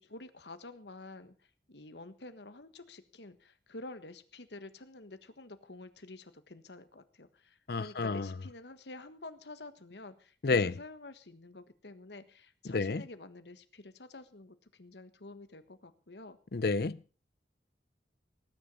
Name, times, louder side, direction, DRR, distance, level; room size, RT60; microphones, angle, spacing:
voice 1, 0.0-1.3 1.7-16.4, left 2 dB, 75° left, 1.5 m, -49 dB
voice 2, 7.7-8.3 10.4-10.7 12.6-13.0 16.5-17.0, left 4 dB, 60° left, 0.6 m, -30 dB
18.5 x 10.0 x 5.5 m
head